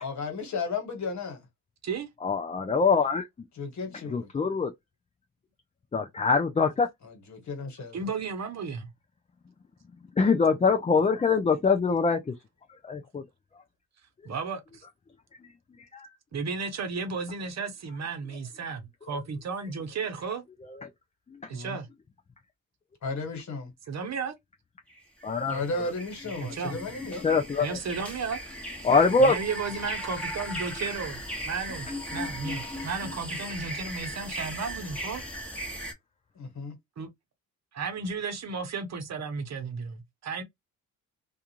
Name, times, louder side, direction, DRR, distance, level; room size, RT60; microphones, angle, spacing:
voice 1, 0.0-1.4 3.5-4.3 7.0-8.1 21.5-21.8 23.0-23.7 25.5-27.2 36.3-36.8, left 3 dB, 55° left, 1.5 m, -34 dB
voice 2, 2.2-3.3 4.1-4.7 5.9-6.9 10.2-12.3 12.8-13.2 15.9-16.1 20.8-20.9 25.2-25.6 27.2-27.8 28.8-29.4, left 4 dB, 20° left, 0.4 m, -23 dB
voice 3, 7.9-8.9 14.2-14.9 16.3-20.4 21.5-21.9 23.9-24.3 26.4-26.8 27.6-28.4 29.2-35.2 37.0-37.1 37.7-40.4, right 5 dB, 50° right, 0.9 m, -34 dB
sound 1, 24.9-35.9, equal, 5° left, 1.1 m, -37 dB
2.4 x 2.4 x 2.9 m
cardioid pair, 80°, 35 cm